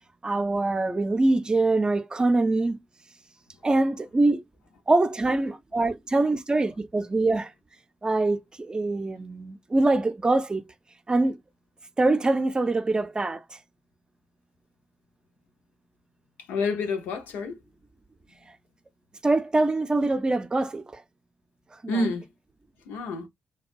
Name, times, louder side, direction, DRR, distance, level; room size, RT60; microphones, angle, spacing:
voice 1, 0.2-2.8 3.6-4.4 4.9-7.5 8.0-10.6 11.1-11.4 12.0-13.6 19.2-21.0 21.8-22.0, right 2 dB, 25° right, 0.5 m, -24 dB
voice 2, 16.4-17.6 21.9-22.3 22.8-23.3, left 3 dB, 80° left, 0.6 m, -28 dB
2.4 x 2.2 x 2.5 m
hypercardioid pair, 45°, 3 cm